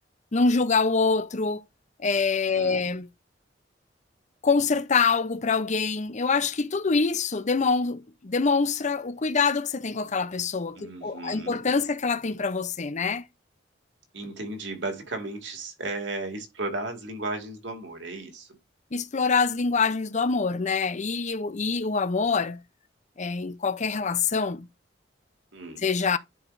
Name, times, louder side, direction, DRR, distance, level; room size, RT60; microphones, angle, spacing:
voice 1, 0.3-1.6 2.0-3.1 4.4-13.3 18.9-22.6 23.2-24.7 25.8-26.2, left 4 dB, 40° left, 0.6 m, -25 dB
voice 2, 2.5-2.9 10.8-11.6 14.1-18.6 25.5-25.9, right 2 dB, 70° right, 2.5 m, -35 dB
11.0 x 4.9 x 2.6 m
head